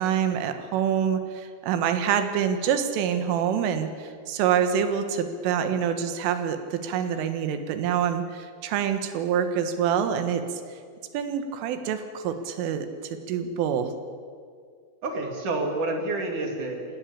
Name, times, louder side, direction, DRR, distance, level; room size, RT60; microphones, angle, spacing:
voice 1, 0.0-10.4 11.1-13.9, right 8 dB, 80° right, 8 dB, 4.0 m, -26 dB
voice 2, 15.0-17.0, right 2 dB, 45° right, 2 dB, 3.6 m, -29 dB
27.5 x 17.5 x 8.6 m, 2.2 s
omnidirectional pair, 5.7 m